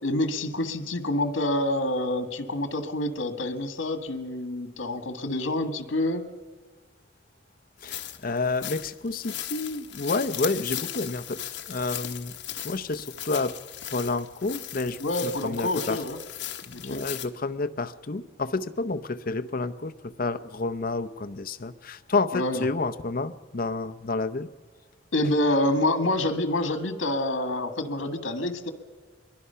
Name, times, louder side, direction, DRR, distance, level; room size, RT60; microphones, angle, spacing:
voice 1, 0.0-6.2 15.0-16.2 16.7-17.0 22.3-22.6 25.1-28.7, left 1 dB, 85° left, 9 dB, 1.6 m, -27 dB
sound 1, 7.8-17.3, left 12 dB, 65° left, 1.3 m, -37 dB
voice 2, 7.8-11.4 11.7-12.3 12.6-13.5 13.9-16.0 16.7-24.5, left 3 dB, 45° left, 9 dB, 0.7 m, -29 dB
25.0 x 22.5 x 5.7 m, 1.5 s
head